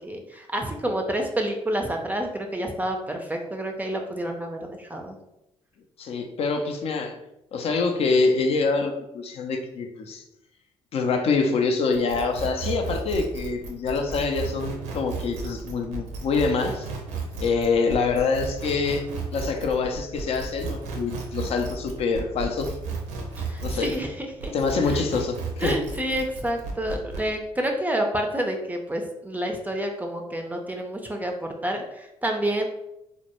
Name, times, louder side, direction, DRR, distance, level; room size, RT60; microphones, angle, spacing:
voice 1, 0.0-5.2 23.4-24.5 24.9-25.0 25.6-32.7, right 1 dB, 15° right, 3 dB, 0.4 m, -29 dB
voice 2, 6.0-7.2 7.5-10.2 10.9-16.9 17.4-22.7 23.6-23.9 24.5-25.8, left 4 dB, 60° left, 5 dB, 0.4 m, -25 dB
sound 1, 11.9-24.1 24.4-27.3, right 4 dB, 85° right, 0.5 m, -34 dB
2.1 x 2.0 x 2.8 m, 0.87 s
supercardioid pair, 65°, 12 cm